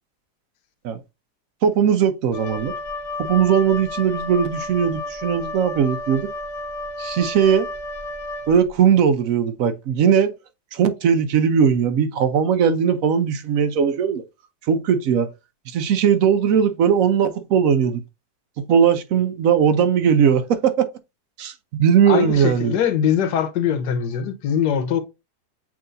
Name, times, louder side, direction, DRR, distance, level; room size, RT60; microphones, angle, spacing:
voice 1, 1.6-2.7 3.2-6.3 7.0-7.7 8.5-10.3 10.7-14.2 14.7-15.3 15.7-18.0 18.6-20.8 21.4-21.5 21.8-22.7, right 7 dB, 65° right, 0.9 m, -19 dB
Wind instrument woodwind instrument, 2.3-8.9, left 2 dB, 55° left, 0.9 m, -32 dB
voice 2, 22.1-25.0, left 8 dB, 75° left, 1.3 m, -22 dB
7.4 x 2.7 x 2.5 m
omnidirectional pair, 1.9 m